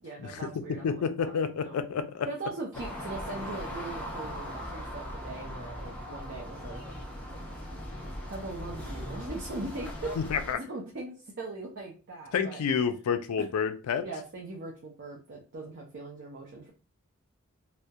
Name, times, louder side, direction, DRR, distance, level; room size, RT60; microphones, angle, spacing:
voice 1, 0.0-1.8 2.3-6.8 8.3-10.1 10.7-12.6 13.4-13.5 14.0-16.7, right 2 dB, 50° right, -2 dB, 0.5 m, -40 dB
voice 2, 0.8-2.3 10.2-10.6 12.3-14.0, left 6 dB, 80° left, 9 dB, 0.3 m, -29 dB
sound 1, 2.7-10.5, equal, 5° left, 0.4 m, -39 dB
2.2 x 2.0 x 2.7 m, 0.33 s
head